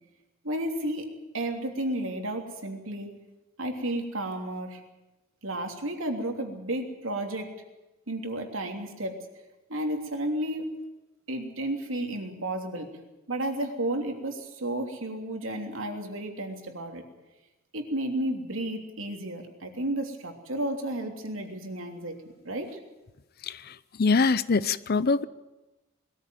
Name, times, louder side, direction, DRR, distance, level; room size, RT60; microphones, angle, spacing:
voice 1, 0.4-1.1 1.3-3.1 3.6-4.8 5.4-7.5 8.1-9.1 9.7-10.7 11.3-12.9 13.3-17.0 17.7-22.2 22.4-22.8, right 1 dB, 75° right, 3 dB, 3.2 m, -32 dB
voice 2, 23.4-25.2, left 4 dB, 50° left, 17 dB, 0.6 m, -24 dB
21.0 x 14.0 x 9.3 m, 1.0 s
head